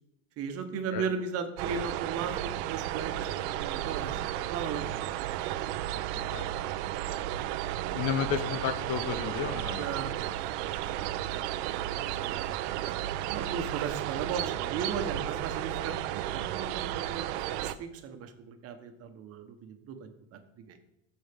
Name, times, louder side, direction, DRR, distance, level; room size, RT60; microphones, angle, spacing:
voice 1, 0.4-5.1 9.7-20.4 20.7-20.8, right 6 dB, 40° right, 6 dB, 1.2 m, -37 dB
sound 1, 1.6-17.7, right 13 dB, 65° right, 0.6 m, -33 dB
voice 2, 6.1-6.5 7.9-9.9, left 8 dB, 50° left, 11 dB, 1.0 m, -32 dB
14.0 x 5.5 x 3.6 m, 0.84 s
supercardioid pair, 130°, 37 cm